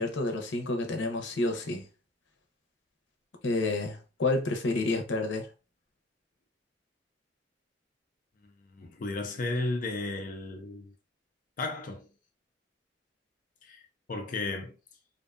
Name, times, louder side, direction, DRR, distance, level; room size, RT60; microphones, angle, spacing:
voice 1, 0.0-1.9 3.4-5.5, left 2 dB, 90° left, 0.6 m, -29 dB
voice 2, 8.6-10.9 11.6-12.1 13.6-13.8 14.1-14.7, left 2 dB, 45° left, 0.4 m, -34 dB
2.5 x 2.2 x 2.4 m
head